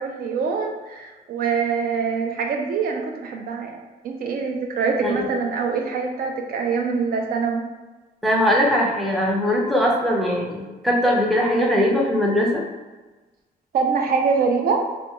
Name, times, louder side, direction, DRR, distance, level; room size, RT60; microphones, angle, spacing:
voice 1, 0.0-3.8 4.0-7.6 13.7-14.8, right 5 dB, 65° right, 2 dB, 0.4 m, -24 dB
voice 2, 8.2-12.6, equal, ahead, -3 dB, 0.4 m, -20 dB
2.4 x 2.2 x 2.8 m, 1.2 s
cardioid pair, 135°, 17 cm